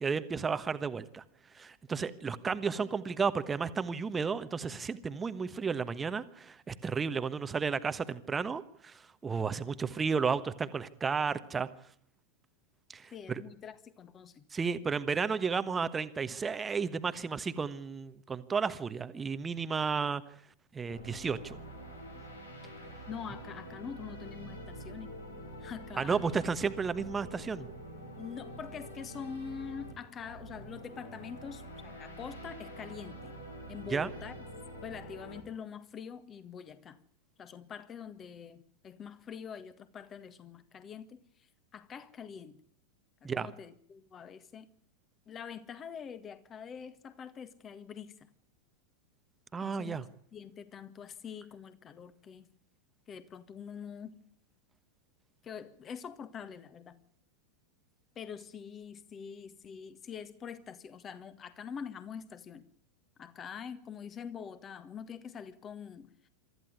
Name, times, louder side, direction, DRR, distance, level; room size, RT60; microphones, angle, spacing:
voice 1, 0.0-1.2 1.5-11.7 12.9-13.4 14.5-20.2 20.7-21.6 26.0-27.7 33.9-34.1 43.2-43.5 49.5-50.0, right 5 dB, 15° right, 1.2 m, -33 dB
voice 2, 13.1-14.5 23.1-25.2 25.6-26.4 28.2-33.3 33.7-34.4 34.8-37.0 37.4-41.2 41.7-42.6 43.2-44.7 45.3-48.3 49.6-50.0 50.3-52.5 53.1-54.2 55.4-57.0 58.2-62.7 63.2-66.3, left 7 dB, 25° left, 1.7 m, -45 dB
sound 1, 20.9-35.4, right 1 dB, 75° left, 4.2 m, -46 dB
24.0 x 14.0 x 9.6 m
figure-of-eight pair, 90°, 0 cm